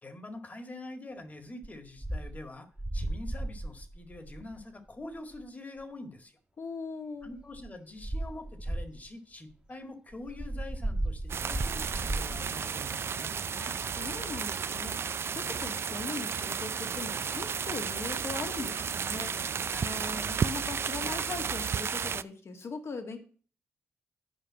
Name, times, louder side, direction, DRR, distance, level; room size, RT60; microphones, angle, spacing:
voice 1, 0.0-6.4 7.2-13.3 19.6-20.0, left 2 dB, 30° left, 8 dB, 1.9 m, -45 dB
sound 1, 1.6-1.7 2.0-2.4 2.8-4.6 5.3-5.4 7.2-7.7 8.0-9.1 10.1-12.5, right 1 dB, 20° right, 1.4 m, -35 dB
voice 2, 6.6-7.3 13.5-23.2, left 4 dB, 60° left, 5 dB, 1.9 m, -40 dB
sound 2, 11.3-22.2, right 6 dB, 55° right, 0.4 m, -33 dB
9.2 x 5.2 x 7.5 m, 0.42 s
cardioid pair, 60°, 5 cm